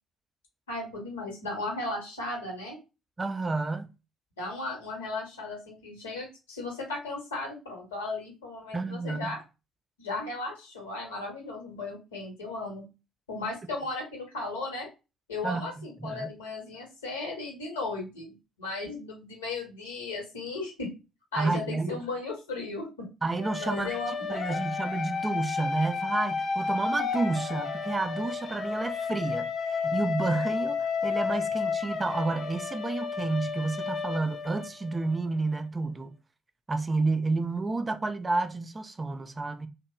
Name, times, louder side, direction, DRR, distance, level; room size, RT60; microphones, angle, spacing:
voice 1, 0.7-2.8 4.4-9.4 10.0-12.8 13.3-14.9 15.3-20.9 21.3-23.1 23.6-24.6, left 3 dB, 80° left, 0.9 m, -36 dB
voice 2, 3.2-3.9 8.7-9.4 15.4-16.3 21.4-22.0 23.2-24.0 24.3-36.1 36.7-39.7, right 3 dB, 25° right, 0.3 m, -30 dB
sound 1, 23.4-35.2, left 5 dB, 45° left, 0.4 m, -32 dB
2.8 x 2.0 x 2.3 m
figure-of-eight pair, 45°, 0 cm